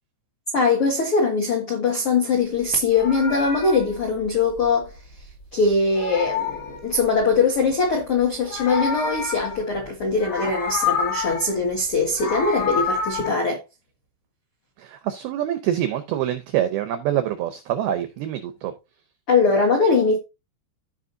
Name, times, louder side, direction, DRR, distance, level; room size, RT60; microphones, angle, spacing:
voice 1, 0.5-5.0 5.5-13.6 19.3-20.2, left 4 dB, 75° left, 1.2 m, -21 dB
Meow, 2.8-5.4 5.7-7.4 8.2-9.9 10.2-11.6 11.9-13.3, left 5 dB, 45° left, 1.3 m, -28 dB
voice 2, 14.8-18.7, right 11 dB, 85° right, 2.2 m, -25 dB
15.0 x 5.1 x 2.6 m
omnidirectional pair, 5.4 m